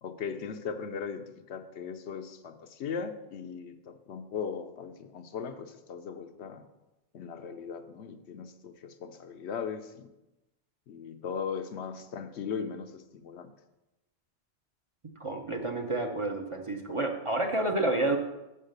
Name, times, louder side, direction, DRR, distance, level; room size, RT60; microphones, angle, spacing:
voice 1, 0.0-6.6 7.1-10.1 10.9-13.5, left 6 dB, 75° left, 8 dB, 0.9 m, -38 dB
voice 2, 15.2-18.2, right 2 dB, 35° right, 2 dB, 0.6 m, -29 dB
6.4 x 5.6 x 6.6 m, 0.99 s
omnidirectional pair, 1.1 m